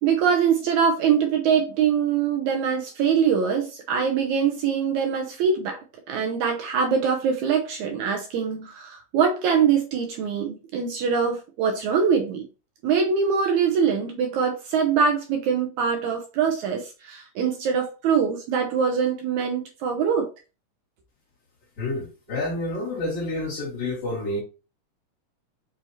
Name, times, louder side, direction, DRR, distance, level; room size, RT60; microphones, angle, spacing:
voice 1, 0.0-5.8 6.1-12.5 12.8-20.3, right 6 dB, 75° right, 1.9 m, -23 dB
voice 2, 21.8-24.4, left 2 dB, 55° left, 2.6 m, -29 dB
6.4 x 2.8 x 2.7 m
omnidirectional pair, 3.8 m